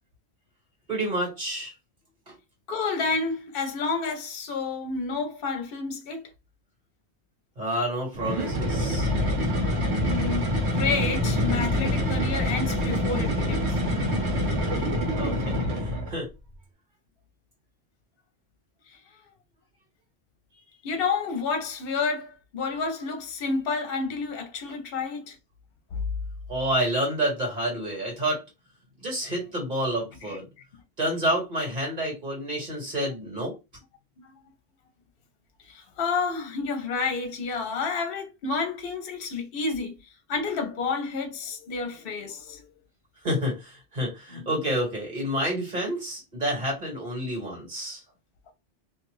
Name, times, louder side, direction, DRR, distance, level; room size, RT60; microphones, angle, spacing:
voice 1, 0.9-1.7 2.3-2.4 7.6-9.1 15.2-16.3 26.5-28.4 29.0-30.4 31.0-33.5 43.2-48.0, right 1 dB, 45° right, 1.6 m, -29 dB
voice 2, 2.7-6.3 10.0-13.8 18.9-19.0 20.8-25.4 25.9-26.0 30.2-30.4 34.2-34.3 35.6-42.7 44.3-44.5, left 4 dB, 60° left, 0.9 m, -30 dB
sound 1, 8.1-16.2, left 1 dB, 85° right, 1.2 m, -26 dB
2.7 x 2.4 x 3.1 m
omnidirectional pair, 1.1 m